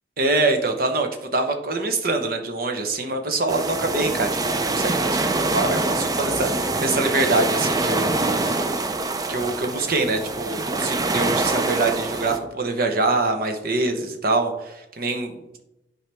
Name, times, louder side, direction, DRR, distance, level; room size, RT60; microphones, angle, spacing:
voice 1, 0.2-1.1 1.3-8.5 9.3-15.6, right 3 dB, 55° right, 5 dB, 1.0 m, -24 dB
sound 1, 3.5-12.4, right 2 dB, 20° right, 0.5 m, -25 dB
10.5 x 4.7 x 3.5 m, 0.90 s
head